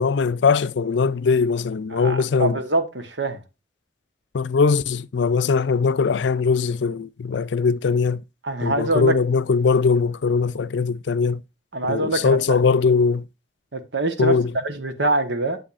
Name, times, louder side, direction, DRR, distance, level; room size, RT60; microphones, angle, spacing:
voice 1, 0.0-2.6 4.3-8.2 8.6-11.4 11.9-13.2 14.2-14.5, left 5 dB, 75° left, 0.4 m, -20 dB
voice 2, 1.9-3.4 8.4-9.2 11.7-12.6 13.7-14.4 14.6-15.6, right 2 dB, 80° right, 1.3 m, -24 dB
8.7 x 7.9 x 2.5 m
head